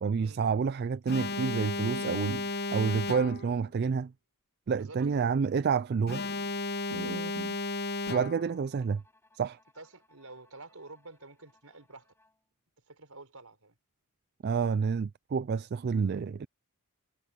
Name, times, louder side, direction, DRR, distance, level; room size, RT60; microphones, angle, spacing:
voice 1, 0.0-4.1 4.7-6.2 6.9-7.6 8.1-9.0 9.3-9.6 14.4-16.5, right 5 dB, 45° right, 0.3 m, -29 dB
Alarm, 1.1-3.6 6.1-8.6, left 3 dB, 45° left, 1.1 m, -34 dB
voice 2, 4.7-5.1 9.8-12.1 12.9-13.8, right 2 dB, 75° right, 4.7 m, -50 dB
Bowed string instrument, 6.7-12.4, left 2 dB, 10° left, 5.1 m, -66 dB
head